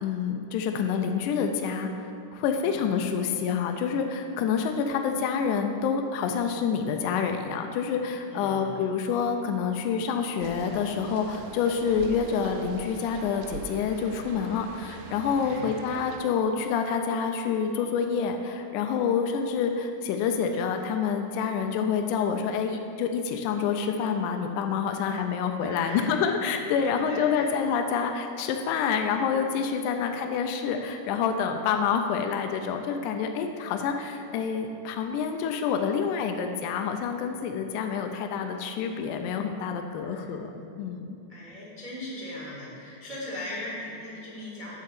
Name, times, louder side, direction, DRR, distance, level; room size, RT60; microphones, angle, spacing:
voice 1, 0.0-1.9 2.3-40.5 40.8-41.2, left 6 dB, 80° left, 5 dB, 1.9 m, -27 dB
voice 2, 8.3-8.7 15.4-15.7 25.6-26.1 26.9-27.5 29.9-30.1 40.0-40.3 41.3-44.8, left 1 dB, 35° right, -6 dB, 0.5 m, -39 dB
sound 1, 10.4-16.2, right 5 dB, 80° right, 1.8 m, -43 dB
9.9 x 3.8 x 6.8 m, 2.5 s
omnidirectional pair, 3.7 m